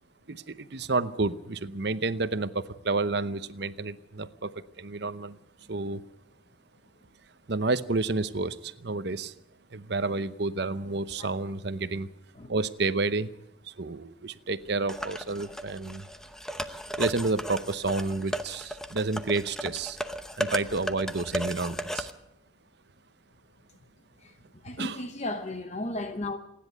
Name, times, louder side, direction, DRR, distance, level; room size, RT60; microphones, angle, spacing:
voice 1, 0.3-5.4 5.7-6.0 7.5-9.3 9.7-12.1 12.5-13.3 13.7-16.0 17.0-20.0 20.4-22.1 24.8-25.0, right 3 dB, 55° right, 0.8 m, -30 dB
sound 1, 14.9-22.1, equal, 5° left, 0.8 m, -35 dB
voice 2, 24.6-26.4, left 2 dB, 35° left, 0.9 m, -34 dB
27.0 x 10.5 x 9.2 m
head